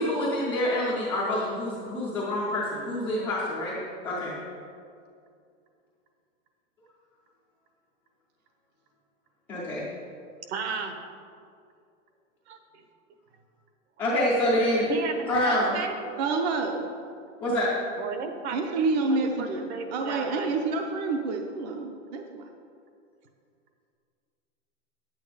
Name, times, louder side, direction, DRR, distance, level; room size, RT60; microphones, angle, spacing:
voice 1, 0.0-3.8 4.0-4.3 9.5-9.9 14.0-14.9 15.3-15.8 17.4-17.7, left 1 dB, 5° left, -10 dB, 0.4 m, -26 dB
voice 2, 10.5-11.0 12.5-12.6 14.9-16.1 18.0-20.6, right 4 dB, 60° right, 6 dB, 1.2 m, -34 dB
voice 3, 16.2-16.9 18.5-22.5, right 3 dB, 35° right, 4 dB, 0.6 m, -28 dB
9.3 x 8.6 x 4.8 m, 2.4 s
supercardioid pair, 170°, 38 cm